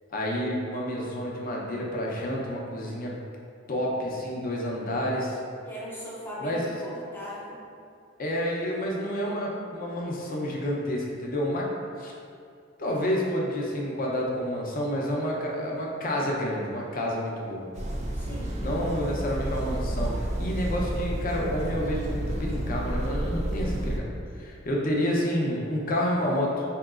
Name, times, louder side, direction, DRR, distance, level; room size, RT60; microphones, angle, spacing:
voice 1, 0.1-3.2 3.7-5.4 6.4-6.6 8.2-11.7 12.0-12.1 12.8-17.7 18.6-24.1 24.4-26.6, equal, 45° left, -2 dB, 0.6 m, -29 dB
voice 2, 5.7-7.6 18.1-18.6, equal, 10° left, -6 dB, 0.7 m, -38 dB
sound 1, 17.7-24.0, right 1 dB, 35° right, 0.4 m, -30 dB
4.6 x 2.8 x 2.4 m, 2.4 s
head